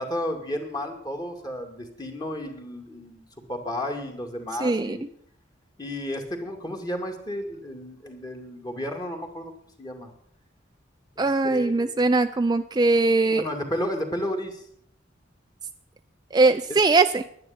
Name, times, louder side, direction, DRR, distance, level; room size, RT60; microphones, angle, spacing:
voice 1, 0.0-5.0 5.8-9.5 9.8-10.1 11.2-12.1 13.3-14.6, left 1 dB, 20° left, 3 dB, 2.3 m, -33 dB
voice 2, 4.6-5.0 11.2-13.4 16.3-17.2, right 3 dB, 20° right, 8 dB, 0.4 m, -21 dB
10.5 x 10.5 x 8.6 m, 0.68 s
head